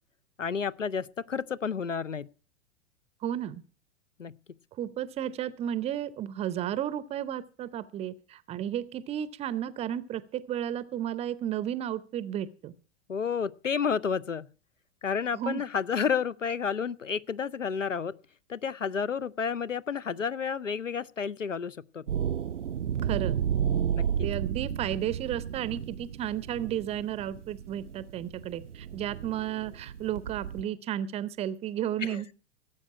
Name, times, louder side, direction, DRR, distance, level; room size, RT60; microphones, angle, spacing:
voice 1, 0.4-2.3 4.2-4.3 13.1-14.4 15.0-18.2 18.5-22.1 23.9-24.3 32.0-32.2, left 6 dB, 85° left, 20 dB, 0.7 m, -31 dB
voice 2, 3.2-3.6 4.8-12.7 15.3-15.6 23.0-23.4 24.2-32.3, right 11 dB, 15° right, 17 dB, 0.6 m, -33 dB
sound 1, 22.1-30.6, right 9 dB, 75° right, 0.6 m, -32 dB
17.5 x 7.9 x 5.9 m, 0.38 s
figure-of-eight pair, 100°, 37 cm